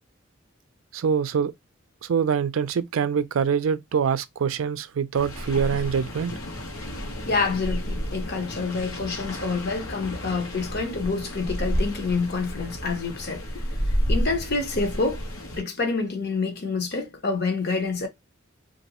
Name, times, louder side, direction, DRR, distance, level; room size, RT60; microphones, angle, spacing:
voice 1, 0.9-1.5 2.0-6.3, right 7 dB, 75° right, 0.4 m, -24 dB
sound 1, 5.1-15.6, equal, 90° left, 1.1 m, -31 dB
voice 2, 7.3-15.2 15.6-18.1, left 4 dB, 50° left, 0.8 m, -27 dB
3.1 x 2.6 x 2.9 m
head